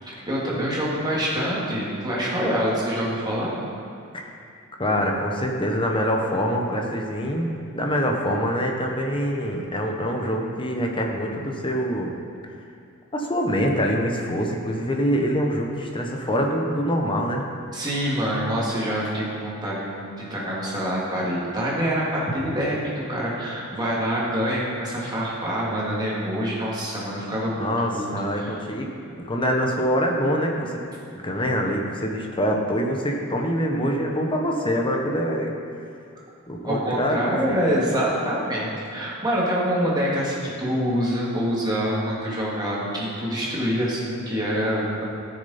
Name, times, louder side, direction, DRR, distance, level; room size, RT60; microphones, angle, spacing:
voice 1, 0.0-3.5 17.7-28.1 28.4-28.5 36.6-45.0, equal, 20° right, -6 dB, 2.3 m, -26 dB
voice 2, 4.8-12.1 13.1-17.4 27.6-30.8 31.1-35.5 36.5-37.6, equal, 25° left, 1 dB, 1.0 m, -25 dB
15.5 x 6.6 x 4.3 m, 2.4 s
head